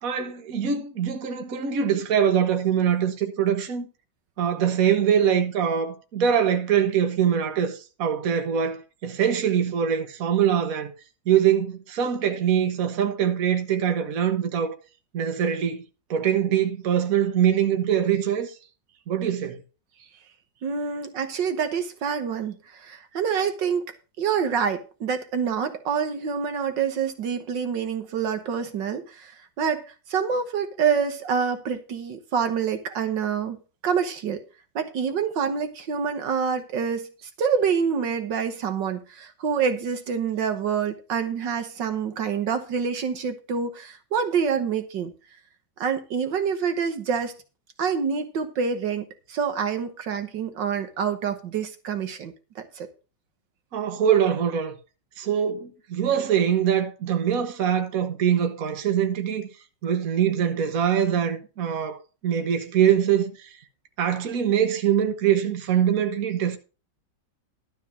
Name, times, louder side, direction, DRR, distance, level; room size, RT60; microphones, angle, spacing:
voice 1, 0.0-3.9 4.4-10.9 11.3-14.7 15.1-15.8 16.1-18.5 19.1-19.6 53.7-54.8 55.2-59.5 59.8-62.0 62.2-63.5 64.0-66.6, right 9 dB, 50° right, 1.6 m, -23 dB
voice 2, 20.6-23.8 24.2-34.4 34.8-37.1 37.4-45.1 45.8-47.3 47.8-52.9, right 6 dB, 70° right, 1.8 m, -27 dB
12.5 x 4.3 x 7.4 m
omnidirectional pair, 2.0 m